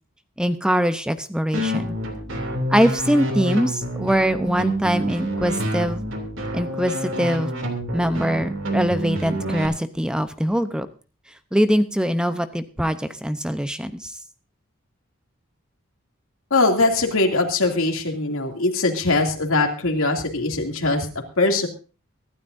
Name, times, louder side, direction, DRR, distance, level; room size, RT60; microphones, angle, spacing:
voice 1, 0.4-2.0 2.7-6.0 6.5-7.5 7.9-10.9 11.5-14.1, equal, 5° right, 10 dB, 0.7 m, -22 dB
sound 1, 1.5-9.7, right 1 dB, 65° right, 2.8 m, -27 dB
voice 2, 16.5-21.1 21.4-21.7, left 2 dB, 75° left, 3 dB, 2.6 m, -21 dB
24.0 x 12.0 x 2.7 m, 0.34 s
head